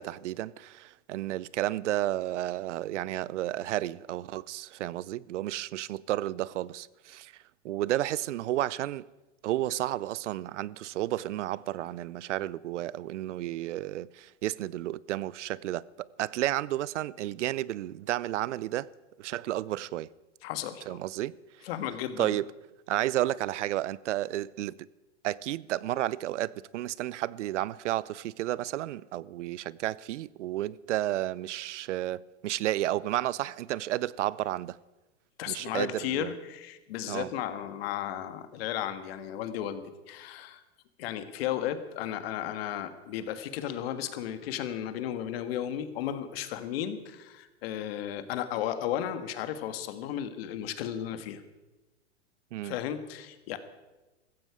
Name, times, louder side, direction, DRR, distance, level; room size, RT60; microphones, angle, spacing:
voice 1, 0.0-9.0 9.4-18.9 19.2-20.1 20.9-21.3 22.2-22.5 22.9-24.9 25.2-34.8 35.5-36.3 37.1-37.3 52.5-52.8, right 14 dB, 75° right, 0.6 m, -32 dB
voice 2, 20.4-21.0 21.6-22.4 35.4-40.6 41.0-51.4 52.6-53.6, left 10 dB, 55° left, 1.6 m, -34 dB
15.5 x 14.5 x 4.9 m
hypercardioid pair, 145°, 36 cm